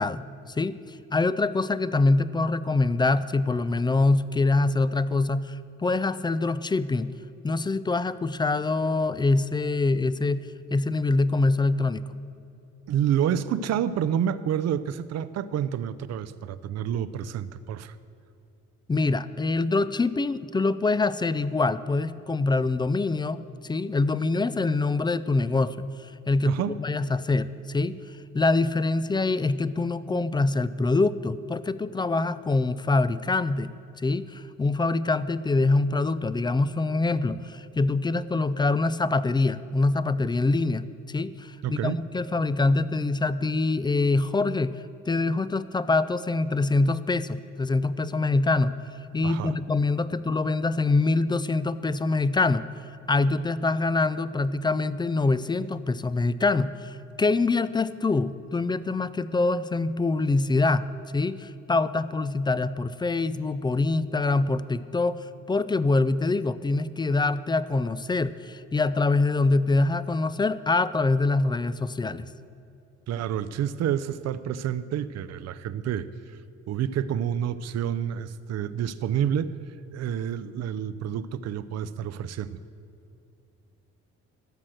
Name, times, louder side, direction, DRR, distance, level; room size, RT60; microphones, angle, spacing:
voice 1, 0.0-7.1 7.4-10.4 10.7-12.1 18.9-23.4 23.6-28.0 28.3-33.7 34.0-44.8 45.1-48.8 49.1-52.7 53.1-60.9 61.1-65.2 65.5-72.3, left 3 dB, 15° left, 16 dB, 0.3 m, -25 dB
voice 2, 12.9-18.0 26.4-26.8 41.6-42.0 49.2-49.6 73.1-76.4 76.7-79.5 79.9-82.6, right 9 dB, 60° right, 14 dB, 0.5 m, -28 dB
13.0 x 6.2 x 7.8 m, 2.6 s
cardioid pair, 90°, 30 cm